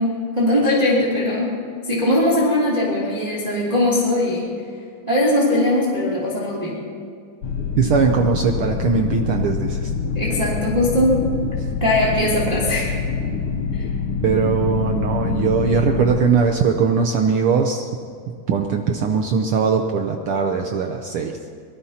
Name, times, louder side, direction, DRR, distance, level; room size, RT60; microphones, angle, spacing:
voice 1, 0.0-1.6 1.9-4.5 5.1-6.8 10.0-11.2 11.8-12.9 13.7-13.9, left 1 dB, 15° right, -5 dB, 2.5 m, -20 dB
sound 1, 7.4-16.2, left 5 dB, 70° left, 1.2 m, -25 dB
voice 2, 7.8-9.9 14.2-17.9 18.5-21.4, right 5 dB, 80° right, 4 dB, 1.2 m, -20 dB
25.5 x 18.5 x 2.9 m, 2.2 s
omnidirectional pair, 3.5 m